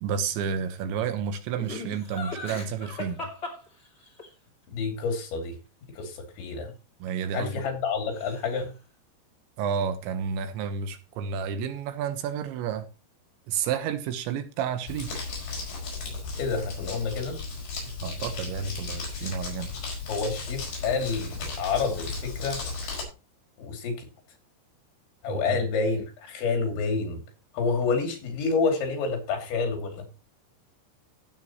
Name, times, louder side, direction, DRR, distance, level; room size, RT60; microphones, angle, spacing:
voice 1, 0.0-3.3 7.0-7.7 9.6-12.9 13.5-15.2 18.0-19.7 25.3-25.6, right 7 dB, 80° right, 3.5 m, -31 dB
Laughter, 1.6-4.3 7.1-8.7, left 3 dB, 20° left, 2.3 m, -38 dB
voice 2, 4.7-5.5 6.0-6.7 7.3-8.7 16.4-17.4 20.1-22.6 23.6-24.1 25.2-27.2 27.5-30.1, left 4 dB, 80° left, 5.1 m, -28 dB
Crumpling crinkling, 14.9-23.0, left 4 dB, 55° left, 6.9 m, -35 dB
16.0 x 8.3 x 3.0 m
omnidirectional pair, 5.2 m